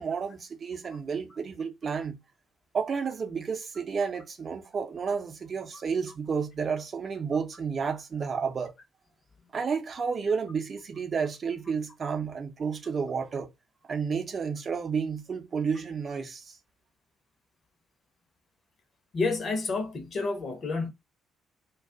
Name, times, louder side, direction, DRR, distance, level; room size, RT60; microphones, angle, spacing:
voice 1, 0.0-2.2 2.7-8.7 9.5-13.5 13.9-16.6, right 6 dB, 40° right, 0.6 m, -31 dB
voice 2, 19.1-20.9, left 3 dB, 45° left, 0.8 m, -29 dB
2.3 x 2.3 x 2.5 m
figure-of-eight pair, 45°, 0 cm